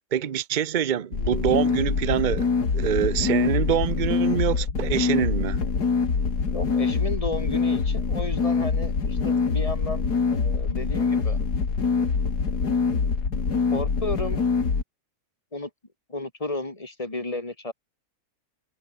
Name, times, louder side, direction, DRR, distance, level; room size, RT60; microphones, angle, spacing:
voice 1, 0.1-2.5 2.7-5.6, right 9 dB, 40° right, 0.8 m, -25 dB
sound 1, 1.1-14.8, left 5 dB, 85° left, 3.1 m, -24 dB
voice 2, 6.5-11.4 11.9-12.1 13.7-14.5 15.5-15.7 16.1-17.7, left 2 dB, 20° left, 3.1 m, -33 dB
omnidirectional pair, 1.7 m